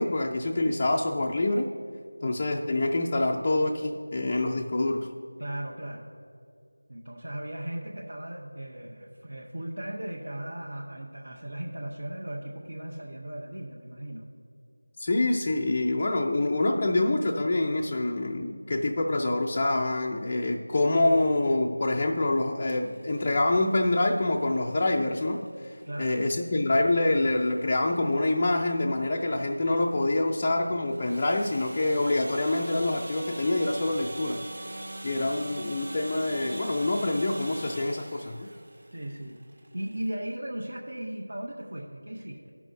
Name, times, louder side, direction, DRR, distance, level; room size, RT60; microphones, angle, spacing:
voice 1, 0.0-1.7 2.2-5.1 15.0-34.4 35.0-38.5, left 2 dB, 20° left, -2 dB, 0.4 m, -26 dB
voice 2, 2.2-2.6 5.4-6.1 6.9-14.2 25.8-26.2 38.9-42.5, right 1 dB, 70° right, -4 dB, 1.3 m, -37 dB
sound 1, 22.7-40.1, right 1 dB, 50° right, 1.1 m, -44 dB
18.0 x 6.1 x 2.7 m, 2.4 s
figure-of-eight pair, 175°, 0 cm